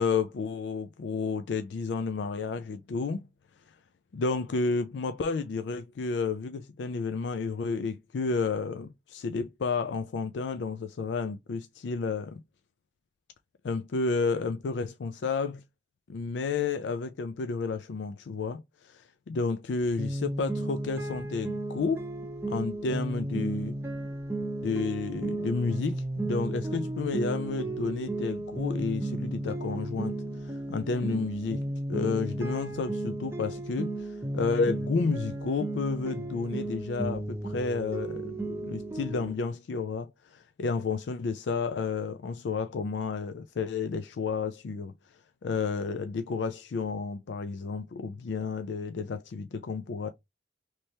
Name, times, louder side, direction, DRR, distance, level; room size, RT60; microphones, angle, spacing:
voice 1, 0.0-3.3 4.1-12.4 13.6-15.6 16.1-22.0 22.5-23.7 24.6-30.1 30.4-31.6 31.9-34.1 34.3-44.9 45.4-50.1, left 4 dB, 70° left, 0.4 m, -31 dB
sound 1, 20.0-39.3, right 1 dB, 15° right, 0.6 m, -34 dB
3.3 x 3.1 x 2.7 m
head